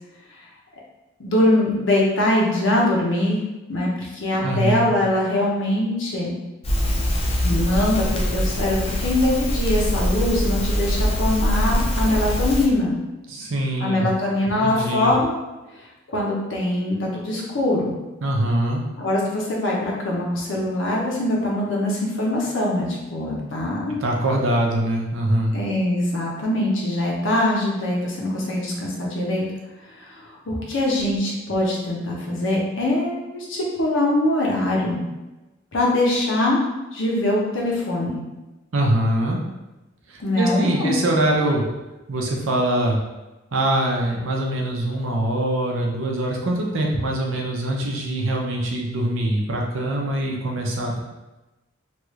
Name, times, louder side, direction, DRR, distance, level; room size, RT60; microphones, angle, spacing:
voice 1, 1.2-3.4 3.7-6.4 7.4-12.9 13.8-15.4 16.1-17.9 19.0-24.0 25.5-29.4 30.0-35.0 35.7-36.6 36.9-38.2 40.2-40.9, left 1 dB, 75° left, -3 dB, 0.8 m, -22 dB
voice 2, 4.4-4.9 13.3-14.1 14.6-15.1 18.2-18.8 24.0-25.5 38.7-39.4 40.1-41.6 42.1-43.0 43.5-51.0, right 1 dB, 85° right, -1 dB, 0.6 m, -23 dB
Crackle, 6.6-12.7, equal, 30° left, 0.5 m, -23 dB
3.1 x 2.4 x 3.1 m, 1.1 s
head